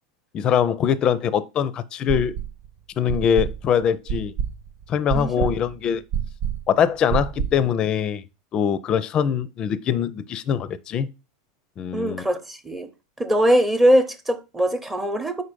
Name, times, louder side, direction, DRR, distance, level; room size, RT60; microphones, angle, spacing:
voice 1, 0.3-2.4 3.0-4.3 4.9-6.0 6.7-8.2 8.5-11.1 11.8-12.3, left 8 dB, 35° left, 0.5 m, -22 dB
sound 1, 2.1-2.7 3.1-7.7, right 8 dB, 60° right, 0.5 m, -28 dB
voice 2, 5.1-5.5 11.9-12.9 13.2-15.4, equal, 10° right, 0.8 m, -21 dB
5.0 x 4.0 x 5.1 m
hypercardioid pair, 100°, 2 cm